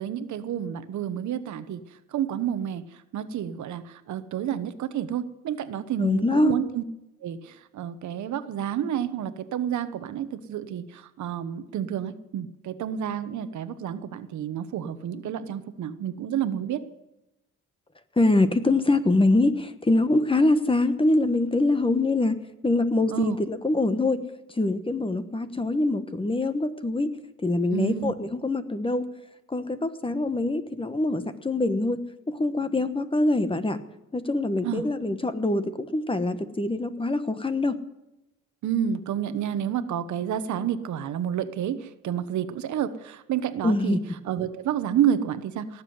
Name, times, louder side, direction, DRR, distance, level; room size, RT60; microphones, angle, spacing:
voice 1, 0.0-1.8 2.1-2.8 3.1-6.8 7.2-16.8 23.1-23.4 27.7-28.1 34.6-34.8 38.6-44.0 44.3-45.8, right 9 dB, 70° right, 12 dB, 1.1 m, -29 dB
voice 2, 6.0-6.5 18.2-22.3 22.6-24.2 24.6-27.1 27.4-29.1 29.5-32.0 32.3-33.8 34.1-37.8 43.6-44.0, left 2 dB, 15° left, 11 dB, 1.2 m, -24 dB
18.5 x 7.4 x 9.5 m, 0.94 s
cardioid pair, 90°, 30 cm